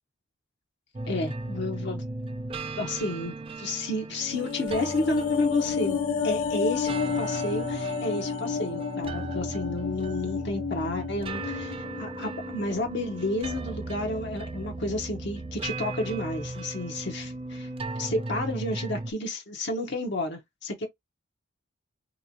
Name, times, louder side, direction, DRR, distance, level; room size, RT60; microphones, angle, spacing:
sound 1, 0.9-19.1, right 2 dB, 25° right, 0.4 m, -37 dB
voice 1, 1.1-2.0 2.8-6.0 6.2-17.7 18.0-20.9, left 2 dB, 55° left, 0.8 m, -31 dB
sound 2, 4.2-12.7 13.0-13.1, left 6 dB, 80° left, 0.6 m, -31 dB
3.3 x 3.0 x 2.6 m
head